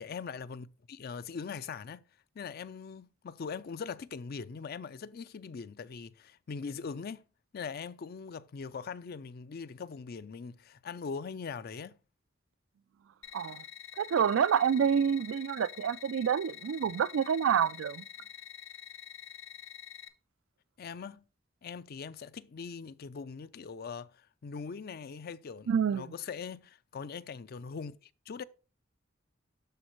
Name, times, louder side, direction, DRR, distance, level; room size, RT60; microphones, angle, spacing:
voice 1, 0.0-2.0 2.3-7.2 7.5-12.0 20.8-21.3 21.6-28.4, left 5 dB, 50° left, 0.4 m, -41 dB
sound 1, 13.2-20.1, left 10 dB, 85° left, 0.8 m, -47 dB
voice 2, 13.3-13.6 14.0-18.0 25.7-26.1, right 8 dB, 85° right, 0.3 m, -28 dB
12.5 x 4.2 x 3.1 m
head